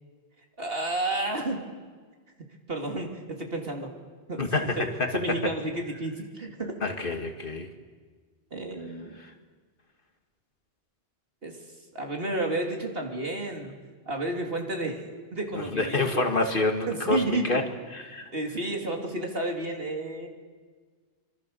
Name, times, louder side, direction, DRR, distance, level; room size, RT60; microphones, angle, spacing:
voice 1, 0.6-1.6 2.7-3.9 4.3-4.4 4.8-6.7 8.5-9.2 11.4-11.6 11.9-13.7 14.0-15.0 15.3-16.2 16.9-17.7 18.3-20.3, right 2 dB, 60° right, 1 dB, 3.4 m, -31 dB
voice 2, 4.4-5.1 6.8-7.7 9.2-9.3 15.5-17.6 17.9-18.3, left 2 dB, 50° left, 5 dB, 2.1 m, -27 dB
25.5 x 25.0 x 6.9 m, 1.5 s
omnidirectional pair, 1.1 m